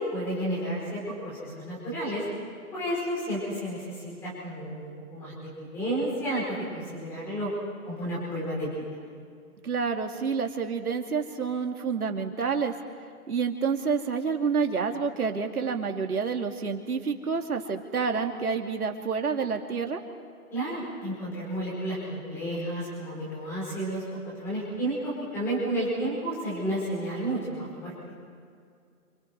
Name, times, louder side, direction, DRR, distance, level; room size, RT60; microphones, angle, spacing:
voice 1, 0.1-2.2 2.7-7.5 7.8-8.8 20.5-27.9, right 1 dB, 5° left, -7 dB, 5.1 m, -32 dB
voice 2, 9.6-12.7 13.3-20.0, right 5 dB, 75° right, 4 dB, 2.9 m, -28 dB
29.5 x 28.5 x 4.8 m, 2.3 s
hypercardioid pair, 180°, 44 cm